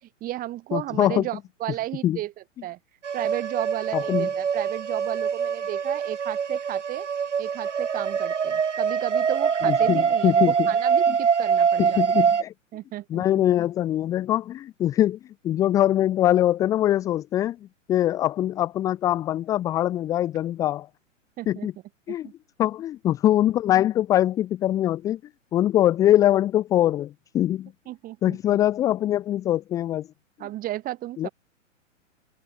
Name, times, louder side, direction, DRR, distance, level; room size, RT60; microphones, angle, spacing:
voice 1, 0.0-2.3 2.6-2.8 3.1-7.1 7.4-12.0 12.7-13.4 21.4-21.7 22.1-22.3 27.9-28.4 30.4-31.3, right 15 dB, 20° right, 4.2 m, -33 dB
voice 2, 0.7-1.3 2.0-2.2 3.9-4.3 9.6-10.7 11.1-11.2 11.8-12.5 13.1-17.6 17.9-20.9 21.5-21.7 22.1-22.3 22.6-25.2 25.5-27.7 28.2-30.1 31.2-31.3, left 12 dB, 10° left, 0.6 m, -23 dB
sound 1, 3.0-12.4, right 7 dB, 65° right, 1.8 m, -24 dB
figure-of-eight pair, 115°, 38 cm